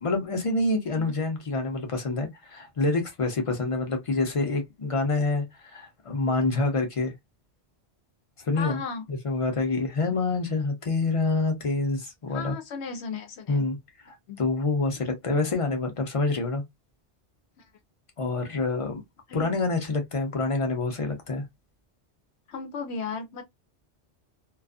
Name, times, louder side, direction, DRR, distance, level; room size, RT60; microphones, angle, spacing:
voice 1, 0.0-7.1 8.4-8.8 9.1-12.5 13.5-13.8 14.1-16.6 18.2-19.0 19.3-21.4, left 3 dB, 35° left, 0.6 m, -27 dB
voice 2, 8.5-9.0 12.3-13.7 14.3-14.4 19.3-19.5 22.5-23.4, left 5 dB, 75° left, 0.8 m, -35 dB
2.4 x 2.4 x 2.3 m
omnidirectional pair, 1.1 m